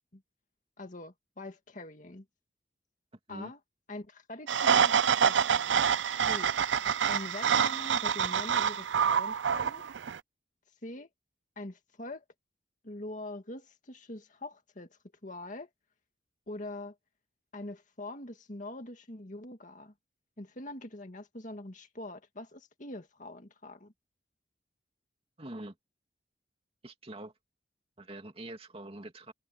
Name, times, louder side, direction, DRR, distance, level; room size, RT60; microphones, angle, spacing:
voice 1, 0.8-2.2 3.3-3.6 3.9-5.8 6.3-6.5 7.1-9.8 10.8-11.1 11.6-12.2 12.8-15.7 16.5-17.0 17.5-19.9 20.4-23.9, left 2 dB, 45° left, 2.0 m, -43 dB
sound 1, 4.5-10.2, right 7 dB, 85° right, 0.5 m, -27 dB
voice 2, 25.4-25.7 26.8-27.3 28.0-29.3, right 1 dB, 30° right, 2.5 m, -44 dB
head